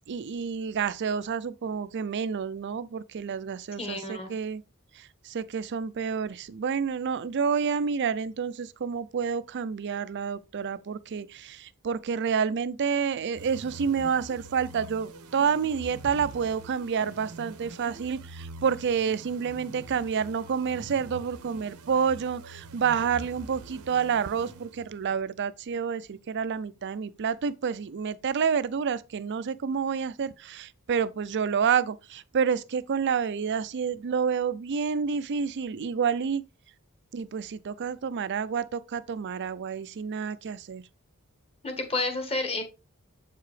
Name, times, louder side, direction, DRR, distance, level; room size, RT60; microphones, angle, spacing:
voice 1, 0.1-4.6 4.9-36.4 37.1-40.8, right 6 dB, 50° right, 0.4 m, -29 dB
voice 2, 3.8-4.3 41.6-42.6, left 3 dB, 25° left, 1.4 m, -30 dB
sound 1, 13.4-25.1, right 3 dB, 85° right, 0.9 m, -45 dB
7.5 x 4.7 x 3.3 m
head